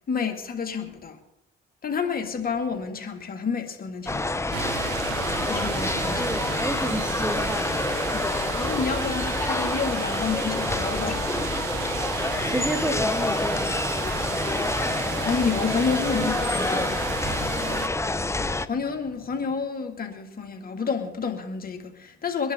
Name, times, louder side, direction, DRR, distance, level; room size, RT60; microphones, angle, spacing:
voice 1, 0.1-1.2 1.8-4.5 5.4-6.3 8.1-11.5 15.2-16.9 18.7-22.5, left 5 dB, 45° left, 2.6 m, -29 dB
sound 1, 4.1-18.7, left 2 dB, 15° left, 0.9 m, -27 dB
sound 2, 4.5-17.9, right 15 dB, 85° right, 0.6 m, -34 dB
voice 2, 6.2-7.9 12.3-13.7 16.2-17.0, right 1 dB, 5° right, 1.4 m, -31 dB
24.0 x 11.0 x 3.9 m
supercardioid pair, 65°, 21 cm